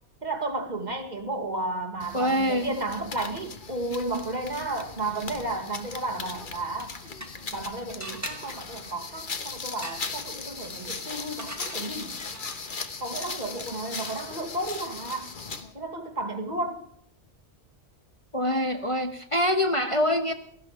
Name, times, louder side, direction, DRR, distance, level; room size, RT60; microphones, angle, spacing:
voice 1, 0.2-6.9 7.5-12.1 13.0-15.3 15.7-16.8, right 2 dB, 40° right, 1.9 m, -33 dB
sound 1, 2.0-15.7, left 4 dB, 45° left, 1.3 m, -38 dB
voice 2, 2.1-2.7 18.3-20.3, left 1 dB, 30° left, 1.1 m, -25 dB
sound 2, 6.7-7.6 8.0-12.8, right 1 dB, 15° right, 1.8 m, -43 dB
17.5 x 14.0 x 5.0 m
omnidirectional pair, 1.2 m